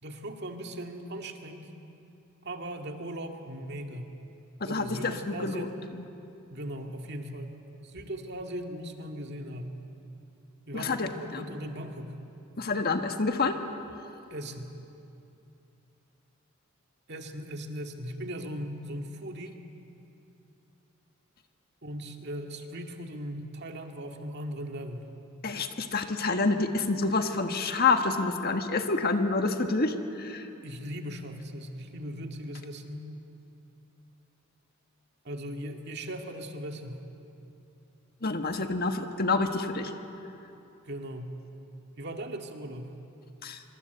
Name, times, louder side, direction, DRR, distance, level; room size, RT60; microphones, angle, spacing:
voice 1, 0.0-1.7 2.4-4.1 4.6-5.7 6.5-9.7 10.7-12.2 14.3-14.7 17.1-19.6 21.8-25.1 30.6-33.1 35.2-37.0 40.8-41.3 42.0-42.9, right 1 dB, 55° right, 4 dB, 2.1 m, -38 dB
voice 2, 4.6-5.7 5.9-6.0 10.7-11.5 12.6-13.6 25.4-30.5 38.2-39.9 43.4-43.6, left 3 dB, 45° left, 6 dB, 1.5 m, -28 dB
26.0 x 24.5 x 8.2 m, 2.8 s
head